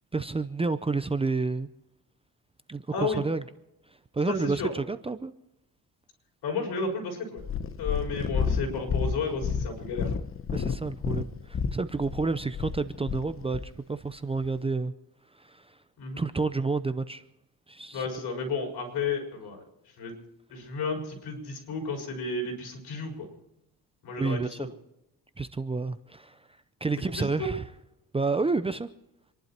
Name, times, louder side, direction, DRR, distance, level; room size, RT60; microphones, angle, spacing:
voice 1, 0.1-1.7 2.7-3.4 4.1-5.3 10.5-14.9 15.3-15.8 16.2-17.2 17.7-18.1 24.2-24.7 25.4-26.5 26.8-27.6 28.1-28.9, right 3 dB, 15° right, 11 dB, 0.6 m, -30 dB
voice 2, 2.9-3.2 4.3-4.7 6.4-7.4 7.8-10.1 16.0-16.2 17.9-19.6 20.0-20.1 20.5-23.3 24.0-24.7 27.0-27.5, left 3 dB, 75° left, 1 dB, 6.2 m, -32 dB
Purr, 7.4-13.7 14.4-14.5, left 6 dB, 35° left, 1.0 m, -31 dB
27.0 x 11.5 x 4.4 m, 0.87 s
cardioid pair, 120°, 39 cm